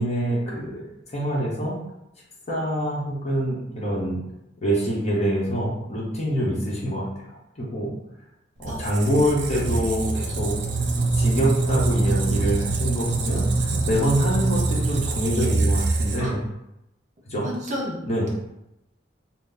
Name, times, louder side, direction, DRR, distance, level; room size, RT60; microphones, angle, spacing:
voice 1, 0.0-1.8 2.5-4.2 4.6-7.1 7.6-8.0 8.6-10.5 11.1-16.4 17.3-17.5 18.0-18.3, right 1 dB, 35° left, -4 dB, 1.0 m, -25 dB
Squeak, 8.6-16.5, right 3 dB, 65° right, 0.6 m, -24 dB
voice 2, 17.4-18.0, equal, 40° right, -3 dB, 0.9 m, -31 dB
4.0 x 2.0 x 3.9 m, 0.88 s
head